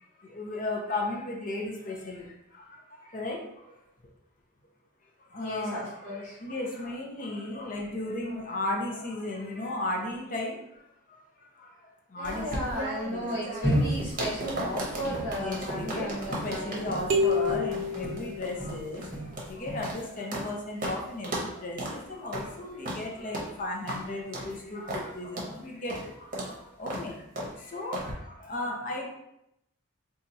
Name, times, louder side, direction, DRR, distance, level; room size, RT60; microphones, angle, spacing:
voice 1, 0.0-3.8 5.2-10.8 11.1-13.3 13.7-13.9 15.3-29.1, left 2 dB, 40° left, 0 dB, 0.6 m, -36 dB
voice 2, 5.4-6.4 12.2-17.2, equal, 85° left, -7 dB, 1.0 m, -35 dB
sound 1, 12.2-20.5 20.8-21.0 21.2-21.5 21.8-22.0 22.3-22.5 22.8-23.0 23.3-23.5 23.9-24.0 24.3-24.5 24.9-25.1 25.4-25.5 25.9-26.1 26.3-26.5 26.9-27.1 27.4-27.5 27.9-28.1, right 1 dB, 40° right, 0.8 m, -35 dB
sound 2, 13.6-18.3 18.6-19.9, equal, ahead, 1.0 m, -33 dB
sound 3, 17.1-19.0, left 2 dB, 65° right, 0.5 m, -28 dB
2.8 x 2.4 x 3.9 m, 0.80 s
head